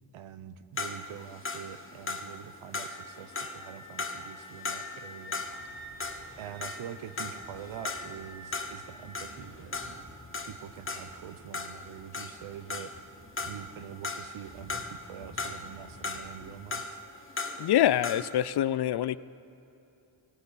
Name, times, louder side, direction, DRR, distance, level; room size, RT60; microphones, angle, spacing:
voice 1, 0.1-5.4 6.4-9.8 10.4-12.9 13.5-17.0, right 9 dB, 90° right, 12 dB, 0.8 m, -45 dB
sound 1, 0.8-5.7 6.0-13.1 13.4-15.1 15.4-18.4, left 3 dB, 25° left, 1.2 m, -38 dB
Wind instrument woodwind instrument, 2.9-9.3, left 2 dB, 20° right, 3.6 m, -49 dB
sound 2, 5.4-16.5, right 1 dB, 60° right, 2.8 m, -54 dB
voice 2, 17.6-19.2, left 12 dB, 60° left, 18 dB, 0.5 m, -25 dB
18.0 x 17.0 x 4.1 m, 2.8 s
cardioid pair, 65°, 46 cm